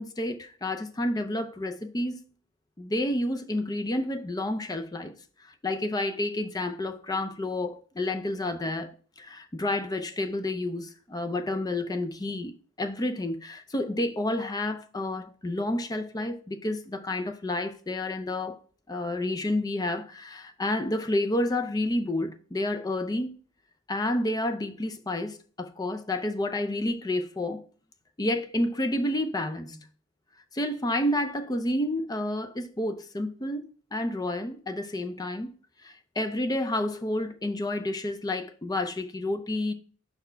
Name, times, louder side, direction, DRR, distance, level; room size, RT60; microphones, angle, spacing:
voice 1, 0.0-2.2 2.8-5.1 5.4-8.9 9.2-18.6 18.9-23.3 23.9-27.6 28.2-29.8 30.5-33.6 33.9-35.5 35.8-39.7, left 1 dB, 20° left, 0.5 m, -30 dB
5.5 x 4.2 x 4.4 m
head